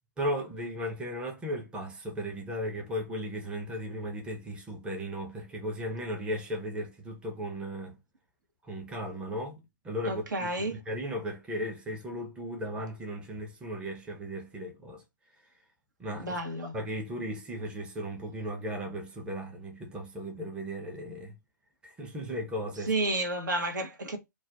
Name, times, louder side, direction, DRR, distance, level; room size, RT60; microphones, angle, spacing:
voice 1, 0.2-8.0 8.6-15.0 16.0-16.4 16.7-21.4 21.8-22.9, equal, 10° right, 0.6 m, -36 dB
voice 2, 10.0-10.8 16.2-16.7 22.9-24.2, right 2 dB, 70° right, 0.8 m, -31 dB
2.4 x 2.1 x 3.9 m
figure-of-eight pair, 120°, 11 cm